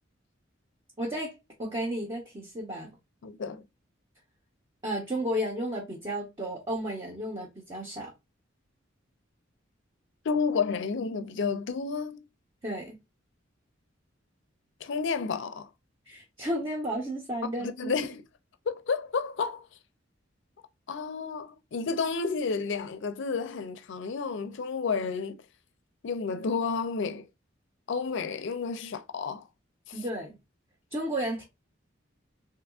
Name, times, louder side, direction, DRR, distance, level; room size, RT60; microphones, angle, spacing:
voice 1, 1.0-3.0 4.8-8.1 12.6-13.0 16.1-17.9 29.9-30.4 30.9-31.4, equal, 25° right, 0.9 m, -33 dB
voice 2, 3.2-3.7 10.2-12.2 14.8-15.7 17.4-18.2 18.7-19.7 20.9-25.4 26.0-27.3 27.9-29.5 29.9-30.0, left 5 dB, 65° left, 0.4 m, -31 dB
3.6 x 2.9 x 2.4 m
head